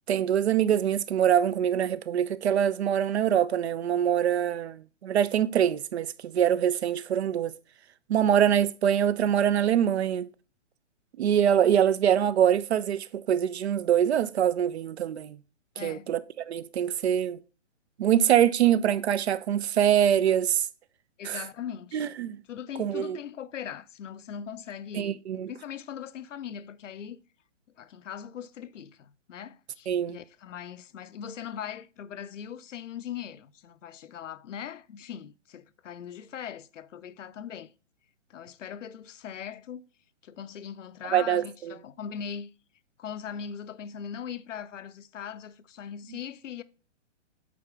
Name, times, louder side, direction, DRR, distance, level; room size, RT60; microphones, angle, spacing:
voice 1, 0.1-7.5 8.1-10.3 11.2-15.4 15.8-17.4 18.0-20.7 21.2-21.4 21.9-22.4 22.8-23.2 24.9-25.5 29.9-30.2 41.1-41.7, right 9 dB, 60° right, 0.6 m, -24 dB
voice 2, 15.8-16.1 21.2-22.1 22.5-25.2 25.5-27.2 27.8-37.7 38.3-39.8 40.2-42.5 43.0-46.6, left 8 dB, 75° left, 0.6 m, -40 dB
8.4 x 4.0 x 3.6 m
hypercardioid pair, 150°, 37 cm